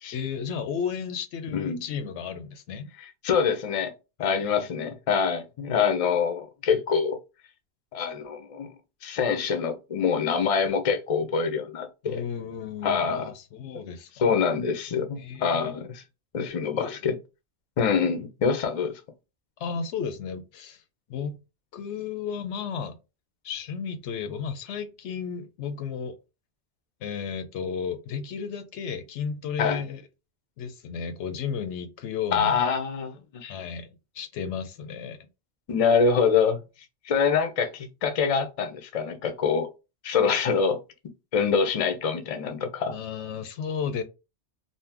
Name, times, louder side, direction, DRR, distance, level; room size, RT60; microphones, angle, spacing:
voice 1, 0.1-2.9 4.2-4.7 12.0-14.3 15.2-15.8 16.6-16.9 19.6-20.8 21.1-21.4 21.7-23.0 23.4-26.2 27.0-30.0 30.6-32.6 33.5-35.2 42.9-44.0, left 6 dB, 85° left, 0.9 m, -33 dB
voice 2, 1.5-1.8 3.0-3.9 4.2-7.2 7.9-8.7 9.0-12.2 12.8-13.3 14.2-16.0 16.3-17.1 17.8-18.9 29.6-29.8 32.3-33.6 35.7-36.6 37.0-39.7 40.0-40.8 41.3-42.9, left 6 dB, 45° left, 0.5 m, -25 dB
2.7 x 2.1 x 3.4 m
omnidirectional pair, 1.2 m